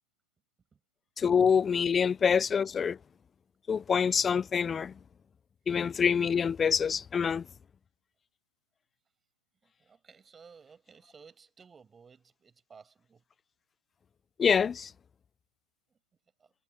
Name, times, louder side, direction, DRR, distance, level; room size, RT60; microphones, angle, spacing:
voice 1, 1.2-3.0 3.7-4.9 5.7-7.4 14.4-14.9, left 6 dB, 20° left, 0.6 m, -26 dB
voice 2, 9.6-13.2 16.4-16.5, right 6 dB, 15° right, 7.7 m, -56 dB
hypercardioid pair, 125°, 0 cm